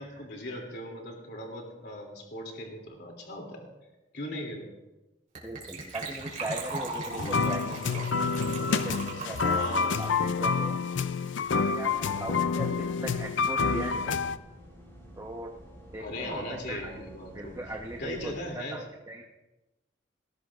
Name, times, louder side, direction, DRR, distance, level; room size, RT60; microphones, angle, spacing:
voice 1, 0.0-3.7 4.1-4.7 9.5-10.0 12.1-12.4 16.0-17.6 18.0-18.8, left 1 dB, 65° left, 1 dB, 2.7 m, -39 dB
voice 2, 5.4-8.0 8.6-10.8 11.6-14.2 15.2-15.5 15.9-17.0 17.3-19.3, right 1 dB, 20° right, 1 dB, 1.0 m, -39 dB
Gurgling / Trickle dribble / Fill (with liquid), 5.4-11.6 11.8-11.9 12.1-12.3 12.6-12.7, right 3 dB, 45° right, 3.7 m, -38 dB
sound 1, 7.1-14.4, left 5 dB, 90° left, 0.5 m, -28 dB
sound 2, 11.8-18.5, equal, 15° left, 5.4 m, -50 dB
19.5 x 17.0 x 2.5 m, 1.0 s
head